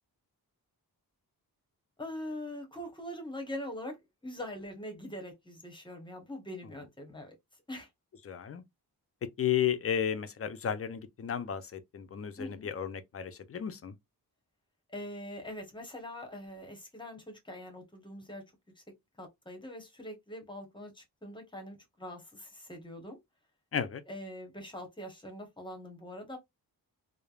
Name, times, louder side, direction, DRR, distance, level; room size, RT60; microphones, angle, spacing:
voice 1, 2.0-4.0 4.2-7.3 7.7-7.9 12.4-12.7 14.9-18.4 19.2-23.2 24.1-26.4, left 1 dB, 15° left, 0.8 m, -43 dB
voice 2, 8.2-8.6 9.4-13.9 23.7-24.0, left 9 dB, 40° left, 0.4 m, -33 dB
3.2 x 2.0 x 2.3 m
wide cardioid pair, 130°, 37 cm